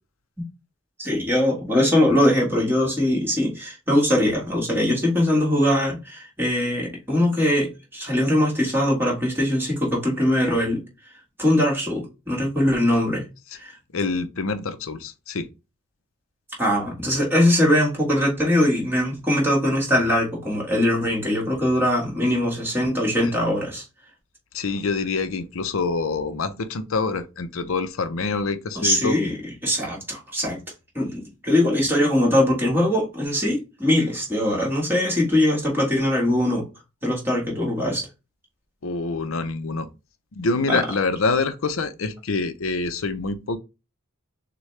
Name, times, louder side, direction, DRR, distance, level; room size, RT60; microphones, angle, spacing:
voice 1, 1.0-10.8 11.4-13.2 13.5-13.7 16.6-23.8 28.7-29.3 29.6-30.6 30.9-36.6 37.0-38.0 40.7-40.8, left 1 dB, 10° right, 1.7 m, -21 dB
voice 2, 13.9-15.5 23.2-23.3 24.5-29.2 38.8-39.9 40.3-43.6, left 4 dB, 65° left, 0.6 m, -26 dB
6.3 x 2.2 x 3.3 m
head